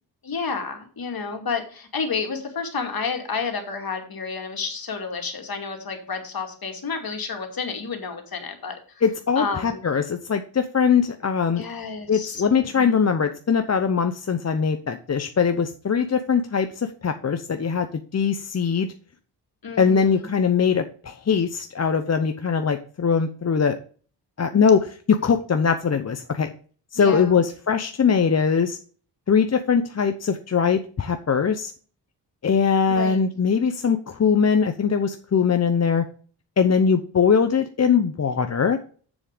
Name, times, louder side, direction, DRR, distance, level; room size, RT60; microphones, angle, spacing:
voice 1, 0.2-8.8 9.4-9.8 11.5-13.0 19.6-20.3 26.9-27.4 32.9-33.2, left 5 dB, 55° left, 4 dB, 2.5 m, -30 dB
voice 2, 9.0-11.6 12.1-17.9 18.1-18.9 19.8-23.8 24.4-26.5 26.9-28.8 29.3-31.7 32.4-36.0 36.6-38.8, left 6 dB, 35° left, 7 dB, 0.8 m, -21 dB
7.3 x 6.8 x 5.1 m, 0.43 s
cardioid pair, 60°, 44 cm